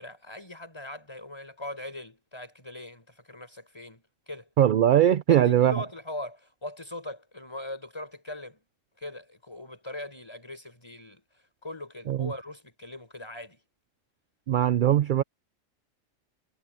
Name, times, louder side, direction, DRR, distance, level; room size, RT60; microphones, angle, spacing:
voice 1, 0.0-4.5 5.3-8.6 9.0-13.6, left 1 dB, 20° left, 5.3 m, -40 dB
voice 2, 4.6-5.7 12.1-12.3 14.5-15.2, right 11 dB, 65° right, 0.5 m, -21 dB
omnidirectional pair, 1.3 m